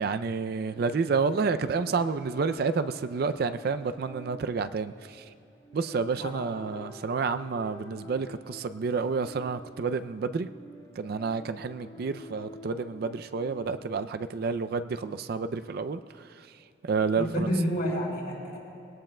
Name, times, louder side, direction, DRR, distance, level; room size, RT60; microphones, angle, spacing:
voice 1, 0.0-5.2 5.7-10.5 11.0-16.0 16.8-17.5, right 4 dB, 55° right, 11 dB, 0.4 m, -29 dB
sound 1, 0.7-13.7, left 1 dB, 25° left, 1.7 m, -48 dB
voice 2, 6.2-6.6 17.1-18.6, equal, 60° left, -3 dB, 4.0 m, -30 dB
21.5 x 17.5 x 2.2 m, 2.5 s
head